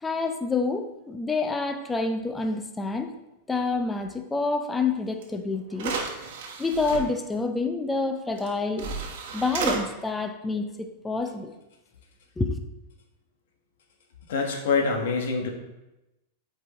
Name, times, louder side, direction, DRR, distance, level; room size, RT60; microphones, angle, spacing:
voice 1, 0.0-3.1 3.5-6.0 6.6-8.9 9.3-11.5 12.4-12.6, left 3 dB, 10° left, 6 dB, 0.5 m, -28 dB
sound 1, 5.2-5.3 5.7-7.0 8.4-8.5 8.8-9.8, right 5 dB, 65° right, 1.2 m, -32 dB
voice 2, 14.3-15.5, left 4 dB, 75° left, 2 dB, 1.2 m, -25 dB
8.0 x 4.6 x 3.0 m, 0.97 s
supercardioid pair, 155°, 0 cm